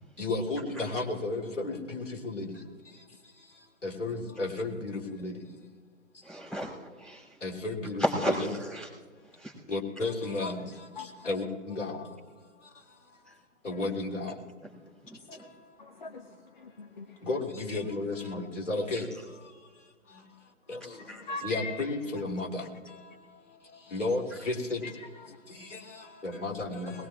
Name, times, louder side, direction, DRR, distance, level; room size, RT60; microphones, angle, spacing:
voice 1, 0.2-2.5 3.8-5.3 7.4-8.0 9.7-10.7 11.3-12.0 13.6-14.3 17.2-19.0 20.7-20.8 21.4-22.6 23.9-24.8 25.7-25.8 26.2-26.9, left 2 dB, 55° left, -1 dB, 3.3 m, -32 dB
voice 2, 6.2-7.4 8.0-8.9 9.2-9.6 13.2-13.4 14.6-14.7 15.0-15.4 18.9-19.0 21.1-21.2, equal, ahead, -9 dB, 3.2 m, -34 dB
voice 3, 11.0-11.4 13.7-13.8 15.8-17.2 21.3-21.7 24.8-25.4, left 3 dB, 35° left, 4 dB, 0.9 m, -41 dB
22.0 x 21.0 x 2.5 m, 1.5 s
figure-of-eight pair, 140°, 42 cm